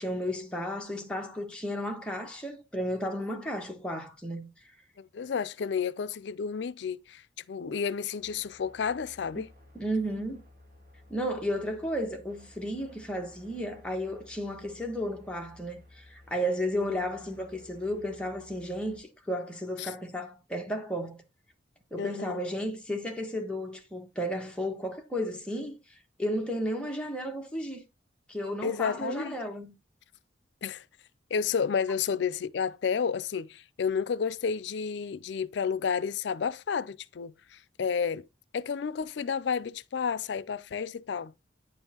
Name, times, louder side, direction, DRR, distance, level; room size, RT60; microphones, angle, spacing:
voice 1, 0.0-4.5 9.3-9.4 9.7-10.4 11.1-21.2 21.9-27.8 28.3-29.7, equal, 5° left, 1.3 m, -33 dB
voice 2, 5.0-7.2 7.5-9.5 19.8-19.9 22.0-22.4 28.6-29.3 30.6-30.8 31.3-38.3 38.5-41.3, left 6 dB, 70° left, 0.4 m, -31 dB
sound 1, 8.2-19.0, left 1 dB, 45° right, 2.8 m, -56 dB
9.5 x 5.4 x 2.9 m
head